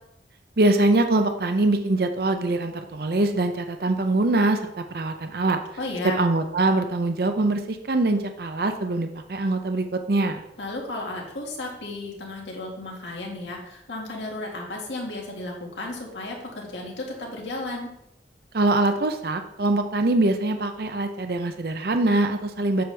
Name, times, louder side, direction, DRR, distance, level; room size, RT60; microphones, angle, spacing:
voice 1, 0.6-5.6 6.1-10.4 18.5-22.8, right 2 dB, 55° right, 7 dB, 0.6 m, -23 dB
voice 2, 5.8-6.3 10.6-17.9, left 2 dB, 85° left, -1 dB, 2.0 m, -33 dB
7.7 x 6.9 x 3.4 m, 0.82 s
head